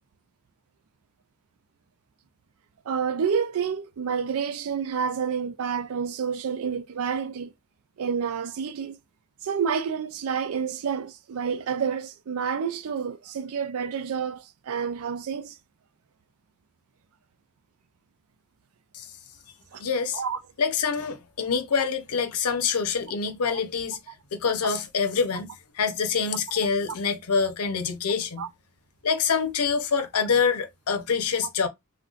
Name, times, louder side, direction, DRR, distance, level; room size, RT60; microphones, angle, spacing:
voice 1, 2.9-7.5 8.0-9.0 9.4-15.5 19.7-19.8 20.1-20.4 28.4-28.5, right 6 dB, 70° right, 0.4 m, -29 dB
voice 2, 19.8-20.2 20.6-24.0 24.3-28.4 29.0-31.7, left 5 dB, 85° left, 0.6 m, -26 dB
2.4 x 2.2 x 3.7 m
head